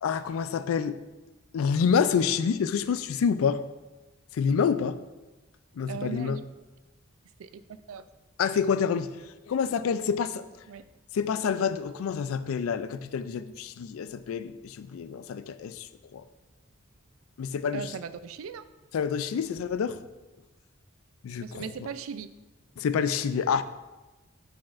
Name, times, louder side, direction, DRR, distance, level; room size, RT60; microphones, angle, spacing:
voice 1, 0.0-1.0 1.5-3.6 4.3-5.0 5.8-6.4 8.4-9.1 9.5-10.4 11.1-15.9 16.1-16.2 17.4-17.9 18.9-20.0 21.2-21.7 22.8-23.6, left 6 dB, 85° left, 13 dB, 0.4 m, -27 dB
voice 2, 5.9-6.4 7.4-8.0 10.7-10.8 17.7-18.6 21.4-22.3, right 6 dB, 80° right, 12 dB, 0.4 m, -38 dB
10.0 x 4.2 x 2.5 m, 1.1 s
head